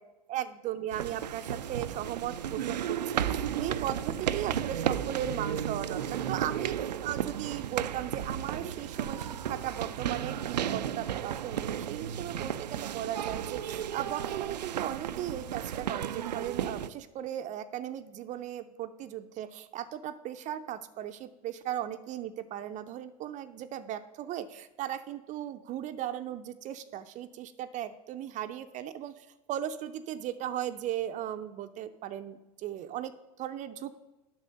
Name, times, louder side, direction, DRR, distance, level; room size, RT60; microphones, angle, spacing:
voice 1, 0.3-33.9, right 11 dB, 35° right, 10 dB, 0.5 m, -37 dB
sound 1, 0.9-16.9, right 9 dB, 85° right, 0.4 m, -34 dB
8.3 x 6.1 x 6.5 m, 1.1 s
hypercardioid pair, 90°, 21 cm